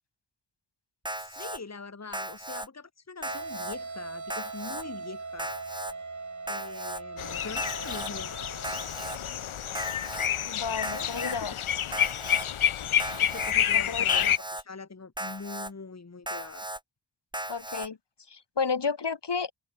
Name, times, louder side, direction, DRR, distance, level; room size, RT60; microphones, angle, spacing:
Alarm, 1.0-1.6 2.1-2.7 3.2-3.8 4.3-4.8 5.4-5.9 6.5-7.0 7.6-8.1 8.6-9.2 9.7-10.3 10.8-11.4 11.9-12.5 13.0-13.5 14.1-14.6 15.2-15.7 16.3-16.8 17.3-17.9, right 1 dB, 10° right, 1.6 m, -36 dB
voice 1, 1.2-5.6 6.5-8.4 10.9-11.3 11.7-11.8 13.2-16.7, left 4 dB, 35° left, 1.7 m, -43 dB
sound 1, 3.2-10.1, right 3 dB, 35° right, 2.2 m, -41 dB
sound 2, 7.2-14.4, left 9 dB, 80° left, 1.0 m, -29 dB
voice 2, 10.5-11.6 13.9-14.0 17.5-18.0 18.3-19.5, left 5 dB, 55° left, 1.9 m, -31 dB
cardioid pair, 45°, 49 cm